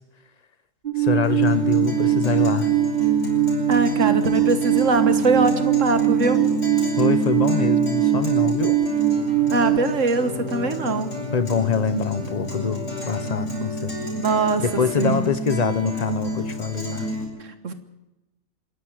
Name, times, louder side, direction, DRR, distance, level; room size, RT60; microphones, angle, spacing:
Alarm, 0.8-9.8, right 11 dB, 40° right, 1.4 m, -21 dB
voice 1, 1.0-2.7 7.0-8.8 11.3-13.9 14.6-17.1, left 5 dB, 35° left, 12 dB, 1.2 m, -24 dB
Guitar, 1.2-17.2, left 1 dB, 65° left, 7.4 m, -30 dB
voice 2, 3.7-6.4 9.5-11.1 14.2-15.3 17.6-17.7, right 3 dB, 70° right, 10 dB, 1.8 m, -22 dB
26.5 x 10.5 x 9.7 m, 1.0 s
omnidirectional pair, 1.3 m